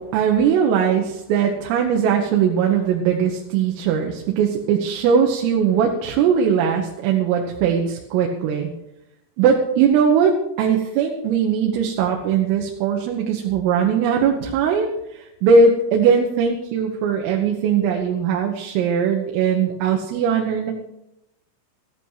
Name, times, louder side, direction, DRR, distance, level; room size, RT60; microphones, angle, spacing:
voice 1, 0.0-8.7 9.4-20.7, right 6 dB, 85° right, 1 dB, 4.0 m, -20 dB
15.0 x 11.5 x 5.7 m, 0.85 s
omnidirectional pair, 5.8 m